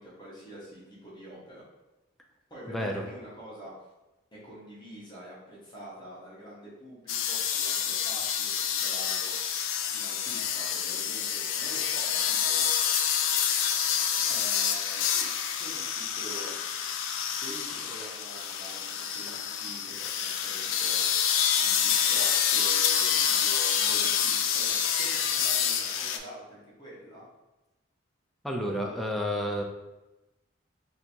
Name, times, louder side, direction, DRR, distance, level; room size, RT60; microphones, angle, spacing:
voice 1, 0.0-1.6 2.5-3.7 4.4-12.7 14.1-15.3 15.6-16.5 17.4-27.3, equal, 25° left, -8 dB, 1.0 m, -46 dB
voice 2, 2.7-3.0 28.4-29.6, equal, ahead, 0 dB, 0.4 m, -30 dB
sound 1, 7.1-26.2, left 8 dB, 90° left, 0.4 m, -27 dB
2.8 x 2.6 x 4.3 m, 1.0 s
head